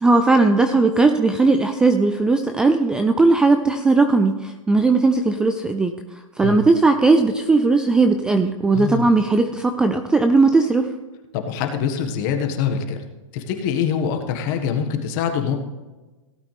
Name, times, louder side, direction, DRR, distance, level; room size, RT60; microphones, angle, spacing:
voice 1, 0.0-5.9 6.4-10.9, right 3 dB, 5° right, 7 dB, 0.3 m, -17 dB
voice 2, 8.7-9.1 11.3-13.0 13.3-15.5, left 7 dB, 40° left, 5 dB, 1.7 m, -24 dB
17.0 x 8.5 x 3.5 m, 1.2 s
hypercardioid pair, 150°, 17 cm